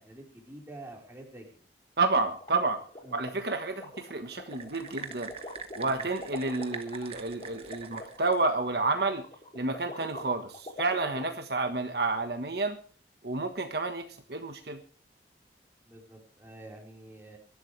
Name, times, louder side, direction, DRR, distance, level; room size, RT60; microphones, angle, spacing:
voice 1, 0.0-1.4 3.0-3.2 5.8-6.1 15.8-17.4, right 1 dB, 15° right, 0 dB, 4.6 m, -47 dB
voice 2, 2.0-2.8 3.1-5.3 5.8-9.2 9.5-12.8 13.2-14.8, right 3 dB, 60° right, 6 dB, 1.4 m, -30 dB
sound 1, 2.3-11.2, left 1 dB, 30° left, 3.1 m, -44 dB
sound 2, 4.5-8.5, right 6 dB, 35° right, 1.5 m, -44 dB
23.0 x 12.0 x 3.3 m, 0.41 s
head